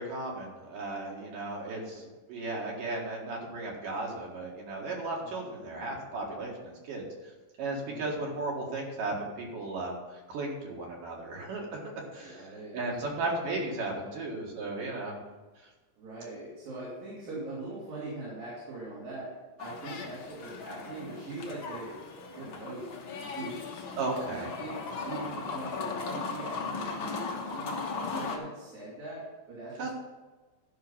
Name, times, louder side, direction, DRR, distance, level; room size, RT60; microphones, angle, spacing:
voice 1, 0.0-2.0 2.3-7.1 7.6-10.0 10.3-11.8 12.1-12.5 12.7-15.2 24.0-24.5 29.8-29.9, right 2 dB, 75° right, -2 dB, 3.4 m, -35 dB
voice 2, 1.7-2.1 5.2-5.5 7.9-8.3 12.2-13.4 16.0-22.0 22.4-22.9 23.2-29.9, right 2 dB, 90° right, -8 dB, 4.6 m, -42 dB
sound 1, 19.6-28.4, left 4 dB, 65° left, 1.2 m, -37 dB
12.0 x 5.7 x 5.5 m, 1.2 s
omnidirectional pair, 3.9 m